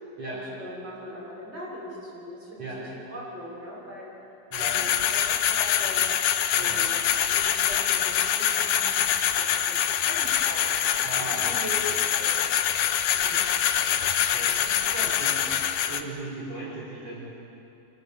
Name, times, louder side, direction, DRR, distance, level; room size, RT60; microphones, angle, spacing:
voice 1, 0.2-4.1 4.5-6.0 6.5-11.8 12.2-12.5 13.1-13.4 13.8-15.5 15.9-16.0, equal, 15° right, -5 dB, 6.5 m, -41 dB
sound 1, 4.5-16.0, left 10 dB, 80° left, 1.7 m, -25 dB
voice 2, 11.0-11.6 14.3-14.6 15.2-15.3 15.9-17.3, right 2 dB, 40° right, -7 dB, 5.2 m, -37 dB
25.5 x 18.0 x 8.0 m, 2.7 s
omnidirectional pair, 4.4 m